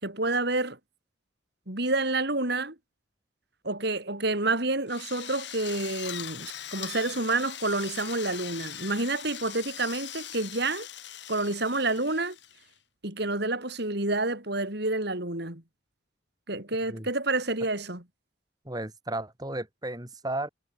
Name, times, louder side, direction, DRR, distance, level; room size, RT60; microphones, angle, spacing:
voice 1, 0.0-0.8 1.7-2.8 3.6-10.9 11.3-12.4 13.0-15.6 16.5-18.0, right 2 dB, 55° right, 4.3 m, -29 dB
Drill, 4.9-12.7, left 10 dB, 60° left, 6.4 m, -41 dB
voice 2, 18.6-20.5, right 1 dB, 20° right, 4.6 m, -34 dB
head